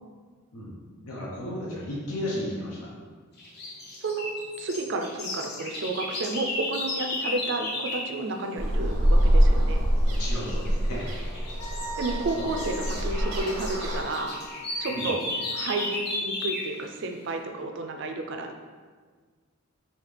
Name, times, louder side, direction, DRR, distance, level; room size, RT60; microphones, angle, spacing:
voice 1, 1.0-2.9 10.0-11.2 11.7-11.9 12.3-12.5 14.9-15.1, left 1 dB, 85° left, -5 dB, 0.9 m, -34 dB
sound 1, 3.4-8.1 10.3-10.7 11.2-16.7, left 2 dB, 45° left, 0.9 m, -34 dB
voice 2, 4.0-9.9 12.0-14.4 14.8-15.3 15.5-18.6, right 2 dB, 55° right, 5 dB, 0.4 m, -31 dB
sound 2, 8.6-14.0, equal, 90° right, 0.8 m, -24 dB
Wind instrument woodwind instrument, 11.6-15.9, right 1 dB, 15° left, 0.4 m, -42 dB
5.6 x 2.7 x 3.3 m, 1.5 s
head